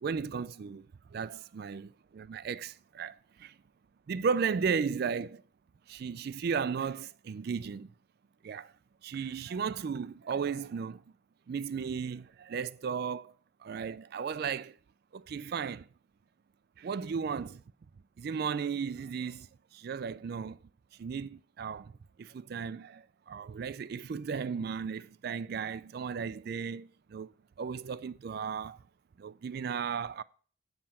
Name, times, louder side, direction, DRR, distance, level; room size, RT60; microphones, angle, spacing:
voice 1, 0.0-3.6 4.1-5.4 5.9-7.9 8.4-8.7 9.0-11.0 11.5-13.3 13.6-14.8 15.1-15.9 16.8-17.6 18.2-20.6 21.0-21.9 22.2-27.3 27.6-28.8 29.2-30.2, right 6 dB, 50° right, 0.3 m, -35 dB
8.8 x 7.6 x 4.2 m
head